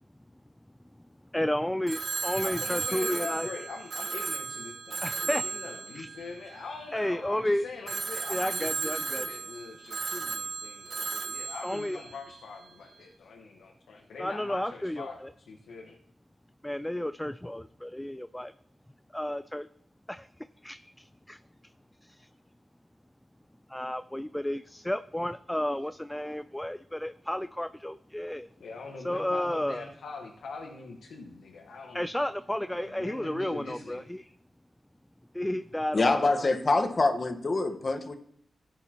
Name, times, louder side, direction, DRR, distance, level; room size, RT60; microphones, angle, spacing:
voice 1, 1.3-3.5 5.0-5.5 6.0-6.1 6.9-7.6 8.3-9.3 11.6-12.0 14.2-15.3 16.6-18.5 19.1-19.7 20.1-20.3 20.6-21.4 22.0-22.3 23.7-28.5 29.0-29.9 31.9-34.3 35.3-36.5, left 1 dB, 10° left, 0.4 m, -32 dB
Telephone, 1.9-7.1 7.9-12.7, right 5 dB, 60° right, 0.7 m, -35 dB
voice 2, 2.4-16.0 28.6-32.1 32.7-34.0, left 4 dB, 85° left, 1.3 m, -43 dB
voice 3, 35.9-38.2, left 3 dB, 50° left, 1.3 m, -25 dB
15.0 x 9.6 x 3.0 m
cardioid pair, 50°, 0 cm